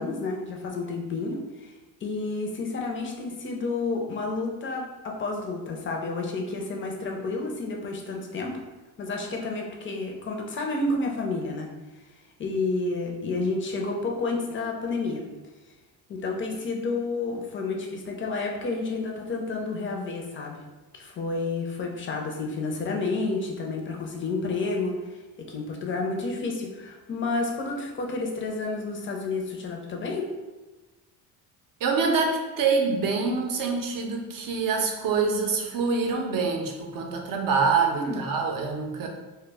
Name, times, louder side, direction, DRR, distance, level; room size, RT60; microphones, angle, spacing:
voice 1, 0.0-1.7 2.0-8.6 9.0-11.7 12.4-15.2 16.1-20.6 20.9-30.3 37.9-38.2, left 3 dB, 30° left, 1 dB, 0.5 m, -30 dB
voice 2, 31.8-39.1, right 4 dB, 55° right, 2 dB, 0.6 m, -25 dB
2.1 x 2.0 x 3.3 m, 1.2 s
cardioid pair, 100°, 42 cm